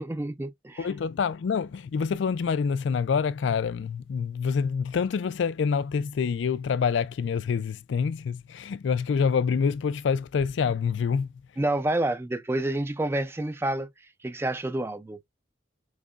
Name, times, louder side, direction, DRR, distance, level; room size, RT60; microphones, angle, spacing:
voice 1, 0.0-0.9 11.6-13.9 14.2-15.2, right 1 dB, 15° right, 0.3 m, -28 dB
voice 2, 0.8-11.3, left 6 dB, 80° left, 0.4 m, -26 dB
6.3 x 2.2 x 2.4 m
head